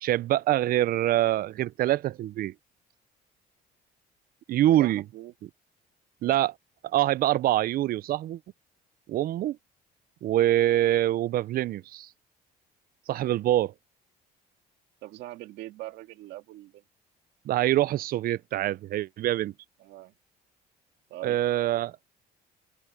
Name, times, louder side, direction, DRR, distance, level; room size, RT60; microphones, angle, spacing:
voice 1, 0.0-2.5 4.5-5.0 6.2-6.5 6.8-8.4 9.1-9.6 10.2-12.1 13.1-13.7 17.5-19.5 21.2-22.0, right 13 dB, 60° right, 0.6 m, -25 dB
voice 2, 4.8-5.3 6.2-6.4 15.0-16.8 19.8-20.1 21.1-21.4, right 16 dB, 85° right, 2.1 m, -42 dB
open air
cardioid pair, 110°, 17 cm